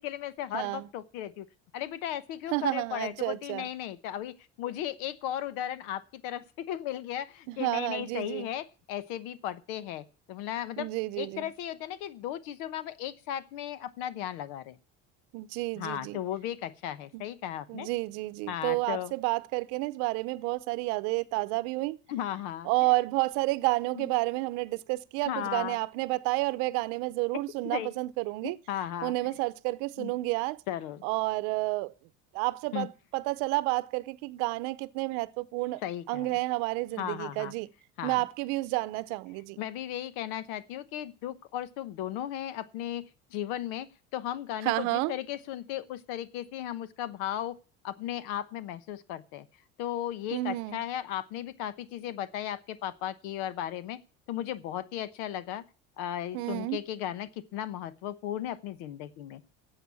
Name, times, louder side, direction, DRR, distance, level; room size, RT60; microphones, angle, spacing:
voice 1, 0.0-1.5 1.7-14.8 15.8-17.9 18.5-19.1 22.1-22.7 24.0-24.1 25.2-25.8 27.6-27.9 28.4-29.1 30.0-30.1 30.7-31.0 32.7-32.9 35.8-36.3 37.0-37.5 38.0-38.2 39.6-47.6 47.8-49.5 49.8-54.0 54.3-55.6 56.0-59.4, left 11 dB, 80° left, 1.0 m, -36 dB
voice 2, 0.5-0.9 2.5-3.6 7.5-8.5 10.8-11.5 15.3-16.2 17.1-17.2 17.7-22.0 22.7-28.6 29.0-30.6 31.0-31.9 32.3-35.8 36.1-37.7 38.0-39.6 44.6-45.1 50.3-50.8 56.3-56.8, right 21 dB, 75° right, 0.7 m, -30 dB
11.0 x 8.0 x 8.3 m
cardioid pair, 145°, 30 cm